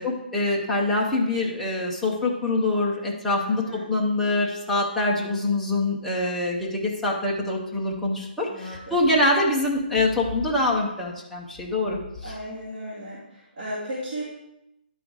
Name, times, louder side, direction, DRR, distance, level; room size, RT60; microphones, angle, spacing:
voice 1, 0.0-12.3, left 2 dB, ahead, -5 dB, 0.4 m, -25 dB
voice 2, 3.3-3.9 8.5-9.0 12.2-13.2 13.6-14.2, equal, 35° right, -11 dB, 2.4 m, -35 dB
11.0 x 3.9 x 4.6 m, 0.86 s
hypercardioid pair, 180°, 6 cm